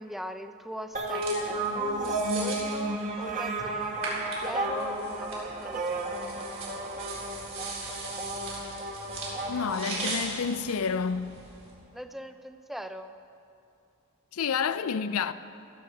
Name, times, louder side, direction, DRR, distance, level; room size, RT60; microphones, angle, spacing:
voice 1, 0.0-6.5 11.9-13.2, equal, ahead, 0.5 m, -41 dB
sound 1, 0.9-10.7, right 2 dB, 35° right, 1.3 m, -33 dB
sound 2, 0.9-11.7, right 3 dB, 65° right, 4.3 m, -40 dB
voice 2, 9.5-11.4 14.3-15.3, left 6 dB, 70° left, 0.5 m, -29 dB
16.0 x 13.5 x 4.9 m
head